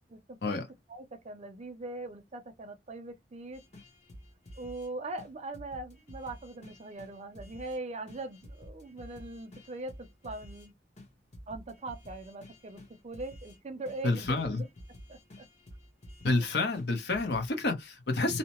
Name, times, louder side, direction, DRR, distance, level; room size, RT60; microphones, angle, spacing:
voice 1, 0.1-0.5 0.9-3.6 4.6-10.7 11.5-14.7 15.1-15.5, right 2 dB, 40° right, 0.5 m, -41 dB
sound 1, 3.5-4.9 5.2-5.3 5.5-7.8 8.1-10.7 11.0-11.1 11.3-13.6 13.8-16.5 16.7-16.9 17.1-17.7, equal, 40° left, 1.0 m, -50 dB
voice 2, 14.0-14.6 16.2-18.4, left 2 dB, 65° left, 0.8 m, -29 dB
2.8 x 2.0 x 2.9 m
head